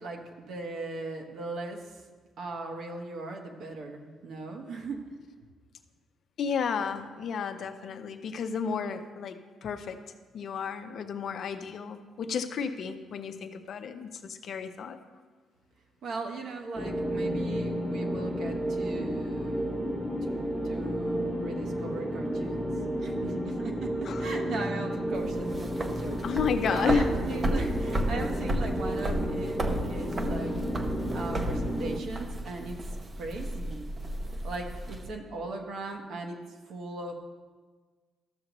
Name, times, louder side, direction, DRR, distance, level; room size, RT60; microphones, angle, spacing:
voice 1, 0.0-2.0 2.4-5.0 16.0-19.8 20.2-22.7 23.0-26.3 26.7-30.5 31.1-32.8 33.2-33.9 34.4-36.4 36.7-37.1, right 3 dB, 70° right, 2 dB, 1.1 m, -38 dB
voice 2, 6.4-10.0 10.3-15.0 24.1-24.2 26.2-27.1, left 6 dB, 60° left, 8 dB, 0.6 m, -32 dB
sound 1, 16.7-32.0, equal, 10° right, 1.0 m, -32 dB
sound 2, 25.1-35.1, right 1 dB, 35° right, 0.7 m, -33 dB
13.0 x 6.5 x 3.0 m, 1.5 s
cardioid pair, 90°, 0 cm